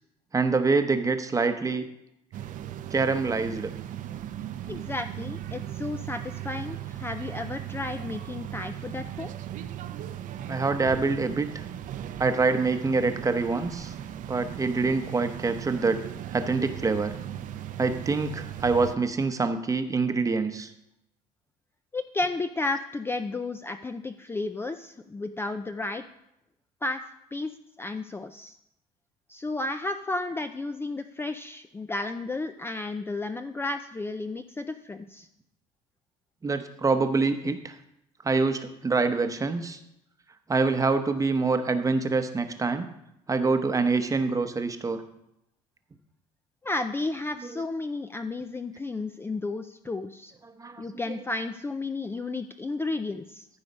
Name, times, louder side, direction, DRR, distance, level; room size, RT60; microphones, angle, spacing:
voice 1, 0.3-1.8 2.9-3.7 10.5-11.6 12.2-13.9 14.3-16.0 16.3-17.1 17.8-20.7 36.4-37.7 38.2-39.8 40.5-42.9 43.3-45.0 50.6-51.2, right 4 dB, 20° right, 8 dB, 0.9 m, -25 dB
sound 1, 2.3-19.0, right 11 dB, 55° right, 0.7 m, -37 dB
voice 2, 4.7-9.3 21.9-26.0 26.8-27.0 27.3-27.5 27.8-28.6 29.3-35.3 46.6-50.3 50.8-53.5, left 2 dB, 15° left, 8 dB, 0.5 m, -33 dB
14.0 x 4.8 x 5.3 m, 0.82 s
cardioid pair, 110°, 16 cm